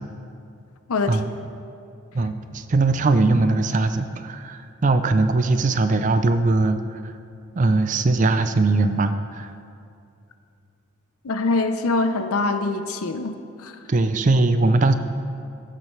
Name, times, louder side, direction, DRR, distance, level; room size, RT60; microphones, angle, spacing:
voice 1, 0.9-1.2 11.2-13.3 13.6-13.7, left 3 dB, 85° left, 8 dB, 0.6 m, -23 dB
voice 2, 2.1-6.8 7.6-9.5 13.9-14.9, right 3 dB, 35° right, 9 dB, 0.4 m, -20 dB
16.0 x 7.7 x 3.2 m, 2.5 s
head